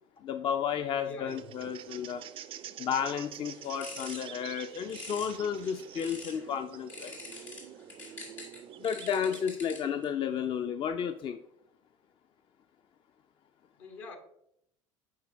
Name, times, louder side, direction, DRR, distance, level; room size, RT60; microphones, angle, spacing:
voice 1, 0.2-2.2 2.8-7.2 8.8-11.4, left 7 dB, 30° left, 0.4 m, -32 dB
voice 2, 1.0-1.6 13.8-14.2, left 3 dB, 65° left, 1.2 m, -44 dB
sound 1, 1.3-9.5, right 10 dB, 35° right, 0.4 m, -47 dB
sound 2, 3.4-6.5 6.9-10.0, left 3 dB, 80° left, 1.6 m, -46 dB
9.3 x 4.4 x 2.7 m
figure-of-eight pair, 65°, 16 cm